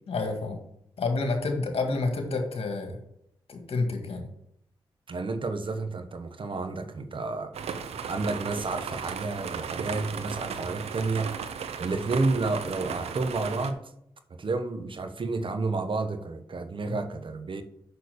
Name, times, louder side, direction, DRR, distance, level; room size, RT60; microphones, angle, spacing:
voice 1, 0.1-0.6 1.0-3.0 3.5-4.3 16.9-17.0, left 3 dB, 70° left, 4 dB, 1.8 m, -29 dB
voice 2, 5.1-7.6 8.1-11.3 11.8-13.8 14.3-17.6, right 3 dB, 55° right, 8 dB, 1.2 m, -30 dB
sound 1, 7.5-13.7, right 6 dB, 80° right, 0.7 m, -36 dB
6.8 x 6.2 x 6.9 m, 0.76 s
supercardioid pair, 40°, 10 cm